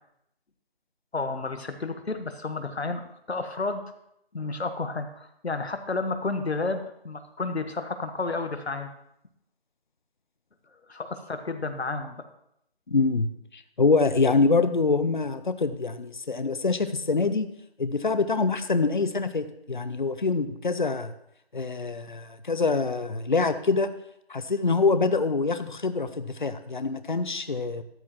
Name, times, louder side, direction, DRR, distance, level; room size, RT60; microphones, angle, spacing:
voice 1, 1.1-3.8 4.3-8.9 10.9-12.1, left 3 dB, 85° left, 8 dB, 1.5 m, -31 dB
voice 2, 12.9-13.3 13.5-17.5 17.8-21.1 21.5-23.9 24.3-27.8, left 4 dB, 50° left, 11 dB, 0.8 m, -25 dB
13.5 x 10.5 x 3.0 m, 0.77 s
figure-of-eight pair, 175°, 31 cm